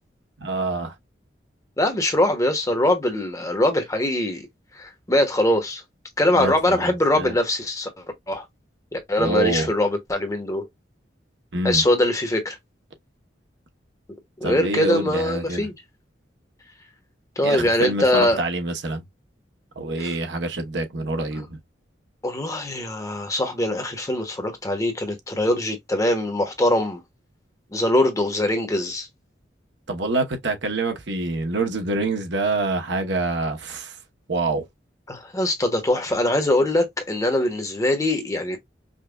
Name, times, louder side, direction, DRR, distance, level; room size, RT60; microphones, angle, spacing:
voice 1, 0.4-0.9 6.3-7.4 9.2-9.7 11.5-11.8 14.4-15.7 17.4-19.0 19.8-21.6 29.9-34.0 34.3-34.6, right 2 dB, 75° right, 0.9 m, -26 dB
voice 2, 1.8-4.5 4.7-5.8 6.2-8.5 8.9-10.7 11.6-12.6 14.4-15.7 17.4-18.4 20.0-20.1 21.4-21.5 22.2-27.0 27.7-29.1 35.1-38.6, left 1 dB, 20° left, 0.9 m, -22 dB
5.2 x 2.2 x 2.3 m
head